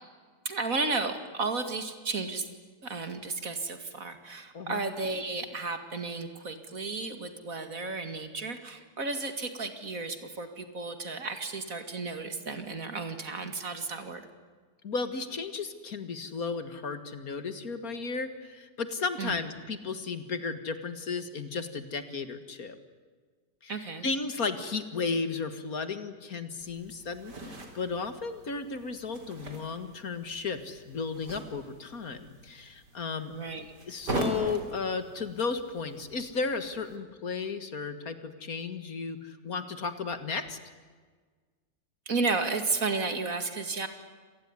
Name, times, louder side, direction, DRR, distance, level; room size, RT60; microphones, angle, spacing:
voice 1, 0.4-2.5 2.8-14.3 19.2-19.3 23.7-24.1 33.3-33.7 42.1-43.9, right 3 dB, 55° right, 8 dB, 2.6 m, -33 dB
voice 2, 14.8-22.8 23.6-33.3 33.8-40.6, left 4 dB, 60° left, 11 dB, 2.2 m, -34 dB
sound 1, 26.6-37.0, right 2 dB, 80° right, 4.3 m, -41 dB
27.0 x 19.5 x 9.8 m, 1.5 s
omnidirectional pair, 1.8 m